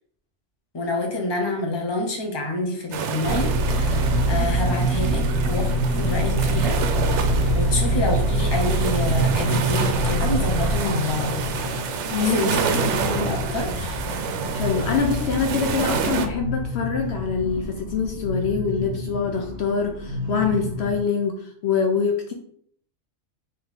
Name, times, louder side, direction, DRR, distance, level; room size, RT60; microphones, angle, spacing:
voice 1, 0.7-6.8 7.5-11.4 12.2-12.8 13.1-14.0, left 2 dB, 25° left, 1 dB, 0.8 m, -28 dB
sound 1, 2.9-16.3, right 6 dB, 75° right, 0.9 m, -29 dB
sound 2, 3.2-10.8, right 1 dB, 90° left, 1.5 m, -22 dB
sound 3, 7.2-21.0, left 3 dB, 35° right, 1.9 m, -31 dB
voice 2, 12.1-12.7 14.5-22.3, left 5 dB, 65° left, 3 dB, 0.9 m, -25 dB
3.6 x 3.0 x 4.8 m, 0.63 s
omnidirectional pair, 1.2 m